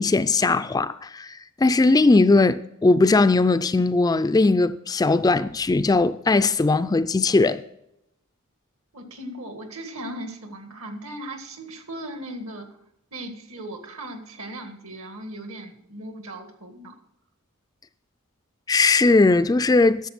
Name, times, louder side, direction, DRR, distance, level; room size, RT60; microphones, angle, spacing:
voice 1, 0.0-7.6 18.7-20.1, left 3 dB, 15° left, 0.3 m, -19 dB
voice 2, 8.9-12.7 13.1-16.9, right 1 dB, 70° right, 1.9 m, -37 dB
11.0 x 7.3 x 6.0 m
head